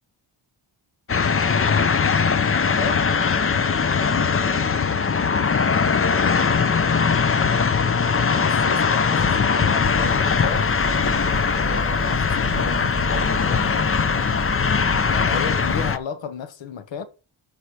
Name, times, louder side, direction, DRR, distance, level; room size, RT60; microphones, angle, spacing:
sound 1, 1.1-16.0, left 5 dB, 30° left, 0.5 m, -20 dB
voice 1, 2.5-3.0 8.1-10.7 11.6-14.3 15.1-17.0, left 7 dB, 70° left, 1.0 m, -34 dB
sound 2, 9.8-16.0, right 3 dB, 5° right, 0.8 m, -33 dB
6.9 x 4.8 x 5.8 m
wide cardioid pair, 115°, 47 cm